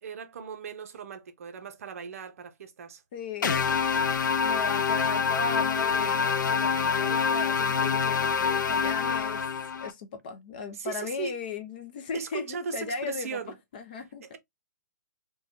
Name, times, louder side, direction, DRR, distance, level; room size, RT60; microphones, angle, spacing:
voice 1, 0.0-3.0 10.7-11.4 12.1-13.6 14.2-14.4, right 5 dB, 50° right, 0.7 m, -37 dB
voice 2, 3.1-3.7 4.4-9.4 9.8-13.4 13.7-14.3, left 5 dB, 30° left, 0.5 m, -37 dB
sound 1, 3.4-9.9, left 6 dB, 90° left, 0.6 m, -26 dB
3.2 x 2.2 x 2.6 m
hypercardioid pair, 170°, 10 cm